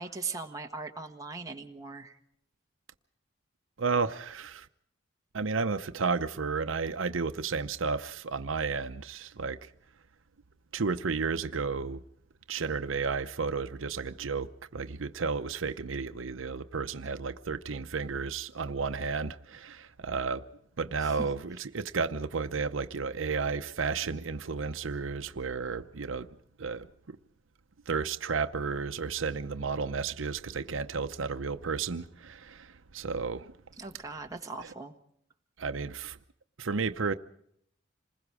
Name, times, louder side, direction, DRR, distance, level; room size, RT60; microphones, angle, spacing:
voice 1, 0.0-2.2 21.0-21.3 33.8-35.0, right 4 dB, 15° right, 1.5 m, -39 dB
voice 2, 3.8-4.7 5.3-9.7 10.7-12.0 12.5-20.4 20.8-26.3 26.6-27.2 27.9-33.5 35.6-36.2 36.6-37.1, right 4 dB, 85° right, 0.8 m, -32 dB
27.5 x 21.0 x 4.9 m
head